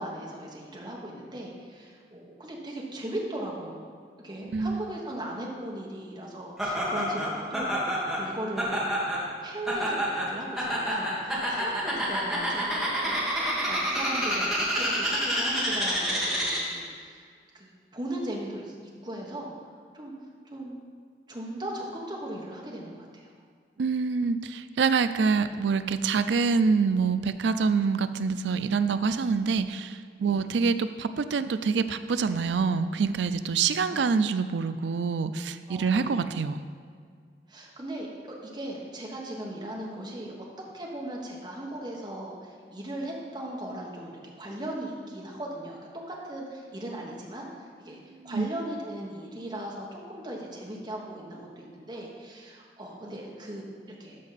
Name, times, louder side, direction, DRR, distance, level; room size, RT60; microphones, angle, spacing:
voice 1, 0.0-3.9 4.2-8.8 9.4-17.3 17.5-18.7 19.0-19.5 19.9-20.1 20.4-20.8 21.3-23.3 30.2-30.5 33.9-34.1 35.7-36.2 37.5-40.3 40.7-45.8 46.1-54.2, right 1 dB, 25° right, -2 dB, 1.3 m, -38 dB
voice 2, 4.4-4.9 23.8-36.6 48.2-48.5, right 5 dB, 85° right, 11 dB, 0.4 m, -26 dB
Laughter, 6.6-16.8, equal, ahead, 1.6 m, -28 dB
13.0 x 5.3 x 4.1 m, 2.1 s
head